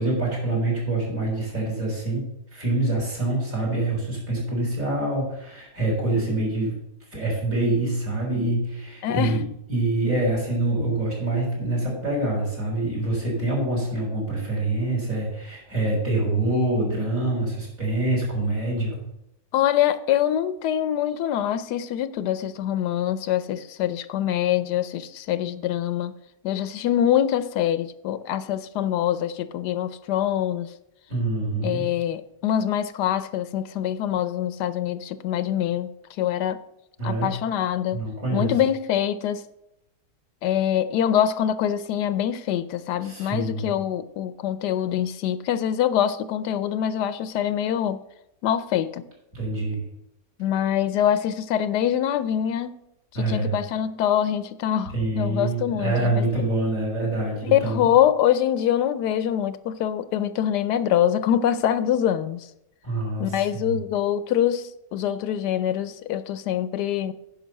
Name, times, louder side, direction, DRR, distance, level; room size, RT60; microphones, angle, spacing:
voice 1, 0.0-2.2 2.5-6.8 7.1-19.0 31.1-31.8 37.0-37.3 37.9-38.5 43.0-43.6 49.3-49.8 53.1-53.5 54.9-57.9 62.8-63.6, right 2 dB, 55° right, -4 dB, 4.6 m, -25 dB
voice 2, 9.0-9.4 19.5-26.1 26.4-30.7 31.6-35.9 36.2-36.6 37.0-38.0 38.3-39.4 40.4-48.0 48.4-49.0 50.4-52.8 53.1-56.3 57.4-62.5 63.2-67.1, left 10 dB, 90° left, 14 dB, 1.2 m, -24 dB
10.0 x 5.4 x 6.4 m, 0.83 s
omnidirectional pair, 1.7 m